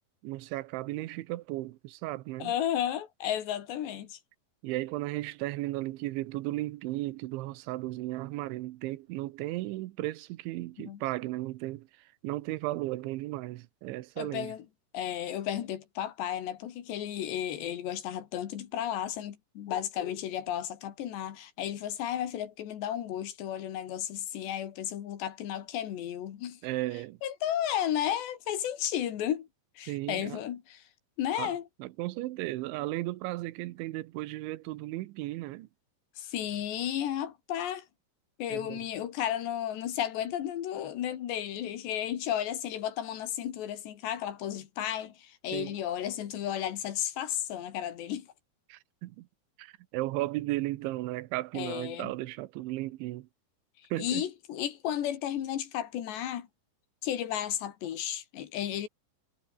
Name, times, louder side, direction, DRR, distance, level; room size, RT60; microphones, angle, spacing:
voice 1, 0.2-2.5 4.6-11.9 12.2-14.5 26.6-27.2 29.9-30.4 31.4-31.5 31.8-35.7 38.5-38.9 45.5-45.8 48.7-49.3 49.6-53.3 53.9-54.2, right 18 dB, 85° right, 3.3 m, -35 dB
voice 2, 2.4-4.2 10.8-11.0 14.2-14.7 14.9-26.6 27.2-29.5 29.8-30.8 31.2-31.7 36.2-37.9 38.4-48.3 51.6-52.1 54.0-56.5 57.0-58.9, left 11 dB, 70° left, 4.2 m, -33 dB
omnidirectional pair, 5.3 m